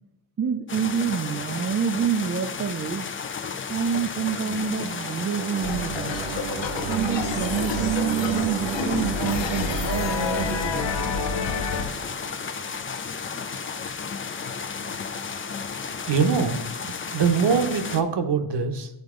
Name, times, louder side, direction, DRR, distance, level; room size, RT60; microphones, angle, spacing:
voice 1, 0.4-3.1 3.7-6.2 6.9-11.2, right 7 dB, 30° right, 7 dB, 0.4 m, -27 dB
sound 1, 0.7-18.0, left 5 dB, 30° left, 0.4 m, -33 dB
sound 2, 4.0-12.7, right 11 dB, 75° right, 0.6 m, -33 dB
sound 3, 5.6-11.8, left 7 dB, 70° left, 0.7 m, -30 dB
voice 2, 16.1-18.9, right 6 dB, 60° right, 7 dB, 1.0 m, -23 dB
9.4 x 3.9 x 3.7 m, 0.94 s
wide cardioid pair, 130°, 46 cm